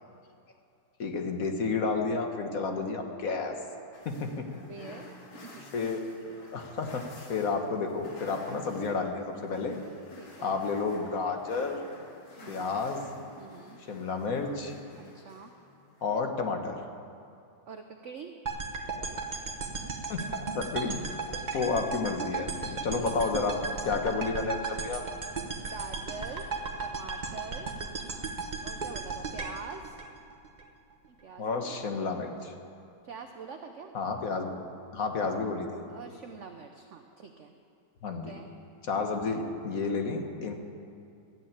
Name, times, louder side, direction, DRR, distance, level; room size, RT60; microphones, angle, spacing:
voice 1, 1.0-3.6 4.0-4.4 5.7-6.0 6.5-9.8 10.4-11.8 12.5-13.0 13.9-14.7 16.0-16.8 20.1-20.2 20.5-21.0 21.5-23.6 23.8-25.0 31.4-32.5 33.9-34.6 34.9-35.8 38.0-38.3 38.8-40.5, left 4 dB, 50° left, 4 dB, 1.5 m, -31 dB
sound 1, 3.9-16.2, left 2 dB, 80° left, 2.8 m, -52 dB
voice 2, 4.7-5.6 10.2-10.6 12.4-12.8 13.4-13.8 15.0-15.5 17.7-18.3 23.0-23.3 25.6-26.5 26.8-27.8 28.6-30.0 31.1-32.1 33.0-33.9 35.9-37.5 38.0-38.5, right 5 dB, 65° right, 5 dB, 0.7 m, -45 dB
sound 2, 18.5-30.6, right 4 dB, 35° right, 0.8 m, -36 dB
13.0 x 9.3 x 8.8 m, 2.5 s
omnidirectional pair, 2.2 m